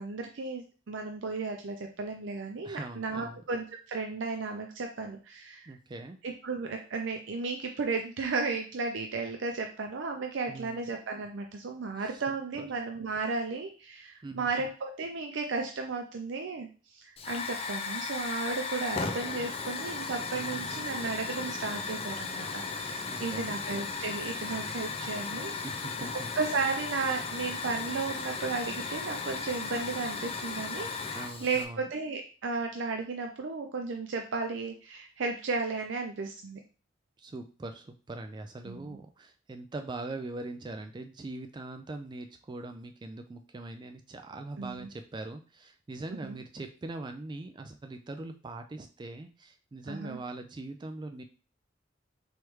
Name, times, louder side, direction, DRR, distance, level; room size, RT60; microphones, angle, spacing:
voice 1, 0.0-5.7 6.2-25.5 26.1-36.6 38.7-39.0 44.6-44.9 46.2-46.4 49.9-50.2, right 4 dB, 85° right, 3 dB, 0.5 m, -34 dB
voice 2, 2.6-3.4 5.7-6.2 10.5-10.9 12.0-12.2 12.6-12.7 14.2-14.7 20.3-20.8 23.1-23.6 25.6-26.3 31.1-31.9 37.2-51.2, right 2 dB, 25° right, 7 dB, 0.3 m, -42 dB
Hiss / Fire, 17.2-31.6, left 4 dB, 30° left, 0.5 m, -36 dB
4.8 x 3.1 x 3.1 m, 0.36 s
head